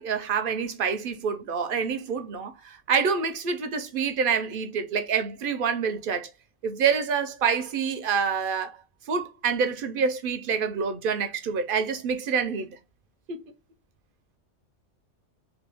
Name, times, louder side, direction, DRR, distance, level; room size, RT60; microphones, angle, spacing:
voice 1, 0.0-6.3 6.6-8.8 9.1-12.8 13.3-13.4, right 6 dB, 60° right, 0.6 m, -27 dB
2.9 x 2.8 x 3.3 m
omnidirectional pair, 1.3 m